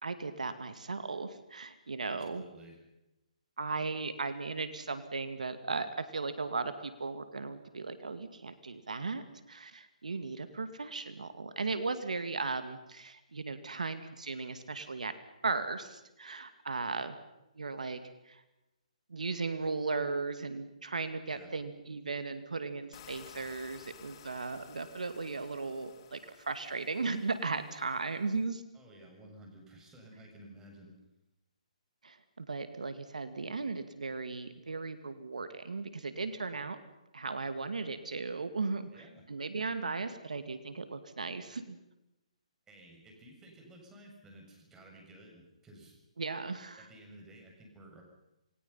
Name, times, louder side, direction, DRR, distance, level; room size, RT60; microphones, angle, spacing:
voice 1, 0.0-2.4 3.6-15.2 15.4-17.2 17.6-18.4 19.1-28.6 32.0-36.8 37.1-38.9 39.3-41.8 46.2-46.9, right 4 dB, 90° right, 10 dB, 2.3 m, -36 dB
voice 2, 2.0-2.8 21.3-21.5 28.7-30.9 38.9-39.3 42.7-46.0 46.8-48.0, right 1 dB, 15° right, 1 dB, 7.1 m, -54 dB
sound 1, 22.9-28.4, left 10 dB, 40° left, 2.5 m, -56 dB
29.0 x 21.0 x 5.8 m, 0.93 s
hypercardioid pair, 150°, 4 cm